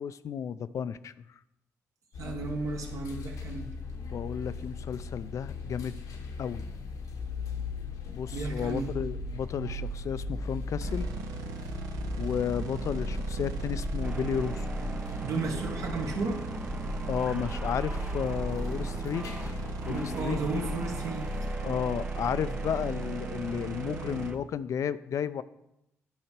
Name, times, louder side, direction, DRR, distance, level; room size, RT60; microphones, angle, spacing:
voice 1, 0.0-1.4 4.0-6.0 6.4-6.7 8.1-11.1 12.2-14.7 17.1-19.6 19.9-20.4 21.6-25.4, left 8 dB, 65° left, 15 dB, 0.4 m, -33 dB
sound 1, 2.1-21.6, left 3 dB, 80° left, 1.0 m, -38 dB
voice 2, 2.2-3.7 8.3-8.9 15.2-16.4 19.9-21.2, right 3 dB, 70° right, 2 dB, 1.6 m, -33 dB
sound 2, 10.8-24.3, right 4 dB, 90° right, 0.8 m, -37 dB
sound 3, 14.0-24.3, right 3 dB, 20° right, 0.5 m, -43 dB
10.5 x 4.8 x 4.5 m, 0.85 s
cardioid pair, 70°, 6 cm